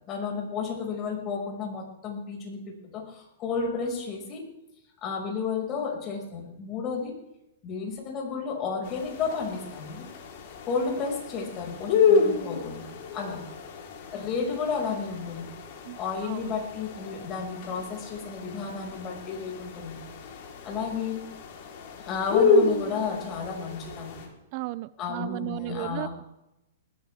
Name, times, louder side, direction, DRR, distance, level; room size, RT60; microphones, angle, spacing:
voice 1, 0.1-4.4 5.0-7.1 7.6-10.1 10.6-13.4 14.1-15.5 16.0-20.0 20.6-21.2 22.0-24.3 25.0-26.1, left 5 dB, 30° left, 0 dB, 5.8 m, -32 dB
sound 1, 8.8-24.3, left 5 dB, 50° left, 4.0 m, -29 dB
voice 2, 24.5-26.1, right 19 dB, 45° right, 17 dB, 0.5 m, -34 dB
19.5 x 15.0 x 3.6 m, 0.89 s
hypercardioid pair, 140°, 0 cm